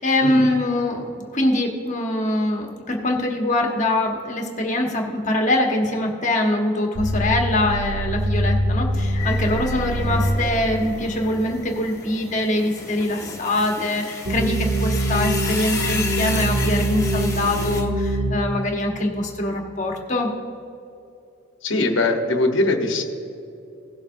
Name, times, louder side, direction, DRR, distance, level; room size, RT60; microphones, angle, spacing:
voice 1, 0.0-20.3, left 1 dB, 35° left, 1 dB, 1.3 m, -23 dB
sound 1, 6.9-10.3 14.2-18.3, right 1 dB, 55° right, 1.8 m, -23 dB
sound 2, 9.2-17.8, left 4 dB, 15° left, 1.6 m, -33 dB
voice 2, 21.6-23.0, left 2 dB, 65° left, 3 dB, 1.1 m, -21 dB
17.5 x 7.2 x 2.7 m, 2.7 s
head